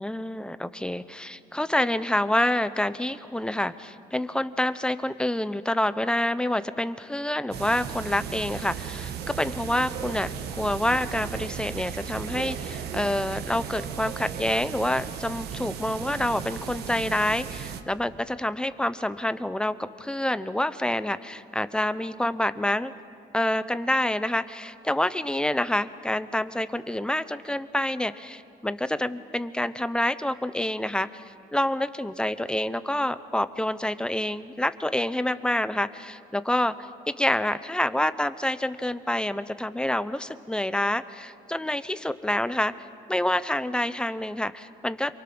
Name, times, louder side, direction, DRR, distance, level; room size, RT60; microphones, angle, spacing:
voice 1, 0.0-22.9 23.3-31.2 31.5-36.7 37.1-42.7 43.1-45.1, left 1 dB, 5° left, 13 dB, 0.8 m, -27 dB
sound 1, 7.5-17.8, right 8 dB, 70° right, 1.5 m, -36 dB
28.0 x 23.0 x 6.2 m, 2.5 s
cardioid pair, 110°, 17 cm